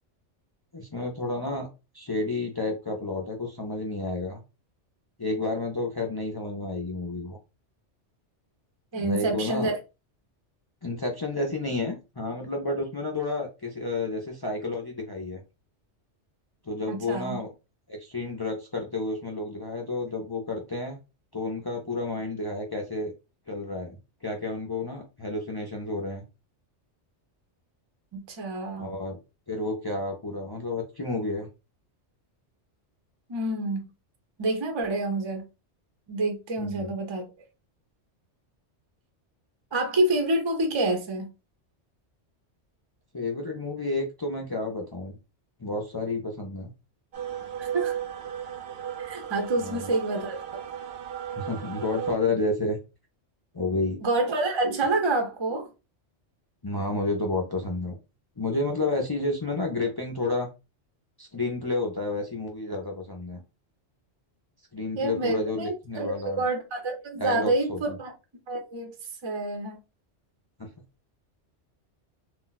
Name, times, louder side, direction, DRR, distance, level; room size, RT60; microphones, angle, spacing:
voice 1, 0.7-1.7 1.9-4.4 5.2-7.4 9.0-9.7 10.8-15.4 16.7-17.5 17.9-21.0 21.3-23.1 23.5-26.2 28.8-29.2 29.5-31.5 36.6-36.9 43.1-45.2 45.6-46.7 49.6-49.9 51.4-52.8 53.5-54.0 56.6-58.0 58.4-60.5 61.2-63.4 64.7-66.4 67.2-68.0, left 2 dB, 40° left, 0.3 m, -30 dB
voice 2, 8.9-9.8 16.9-17.4 28.1-28.9 33.3-33.8 34.4-35.4 36.1-37.2 39.7-41.3 47.6-48.0 49.0-50.4 54.0-55.7 65.0-68.1 68.5-68.9 69.2-69.8, right 2 dB, 35° right, 0.5 m, -27 dB
sound 1, 47.1-52.1, right 9 dB, 65° right, 0.8 m, -35 dB
2.4 x 2.1 x 3.9 m
omnidirectional pair, 1.2 m